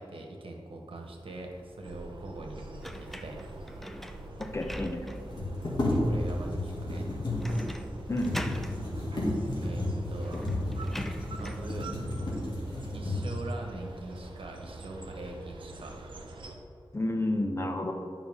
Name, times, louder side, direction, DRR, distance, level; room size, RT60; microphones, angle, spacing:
voice 1, 0.0-3.5 5.9-7.1 9.6-10.4 11.4-11.9 12.9-16.2, right 2 dB, 80° right, 2 dB, 1.2 m, -42 dB
sound 1, 1.8-16.6, right 2 dB, 65° right, 0.9 m, -45 dB
sound 2, 2.8-5.4 5.9-6.0 7.4-7.9 8.2-8.8 9.8-9.9 10.2-11.7, equal, 5° left, 0.4 m, -41 dB
sound 3, 3.7-3.8 3.9-4.0 5.1-13.5 14.2-14.3 14.7-15.4 15.7-16.3, left 1 dB, 55° left, 2.1 m, -32 dB
voice 2, 4.4-5.1 8.1-8.3 16.9-17.9, left 1 dB, 30° left, 4 dB, 0.8 m, -30 dB
11.0 x 5.6 x 3.6 m, 2.3 s
wide cardioid pair, 90°, 9 cm